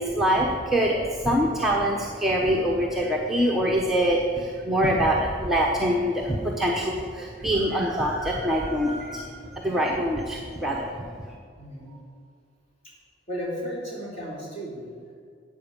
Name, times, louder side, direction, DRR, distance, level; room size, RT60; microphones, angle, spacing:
voice 1, 0.0-9.3 9.6-10.9, equal, ahead, -3 dB, 0.9 m, -24 dB
voice 2, 11.6-12.0 12.8-12.9 13.3-15.1, equal, 35° left, -6 dB, 3.7 m, -35 dB
12.5 x 8.8 x 5.4 m, 2.1 s
head